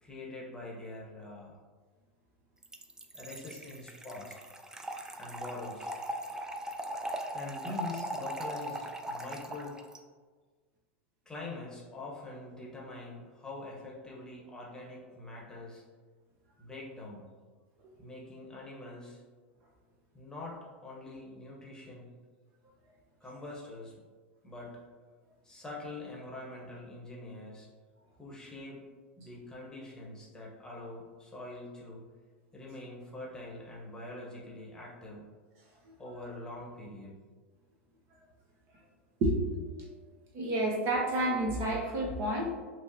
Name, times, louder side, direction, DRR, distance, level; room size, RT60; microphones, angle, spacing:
voice 1, 0.0-1.6 3.1-4.4 5.2-5.9 7.3-9.8 11.3-15.8 16.6-17.2 18.0-19.2 20.1-22.1 23.2-23.9 24.4-24.8 25.4-27.7 28.2-28.9 29.2-32.0 32.5-35.3 36.0-37.1, left 2 dB, 10° left, -3 dB, 1.0 m, -44 dB
Trickle dribble / Fill (with liquid), 2.6-10.0, right 1 dB, 10° right, 0.3 m, -39 dB
voice 2, 40.3-42.5, right 1 dB, 45° right, -2 dB, 0.8 m, -29 dB
5.5 x 2.0 x 2.7 m, 1.4 s
hypercardioid pair, 90°, 7 cm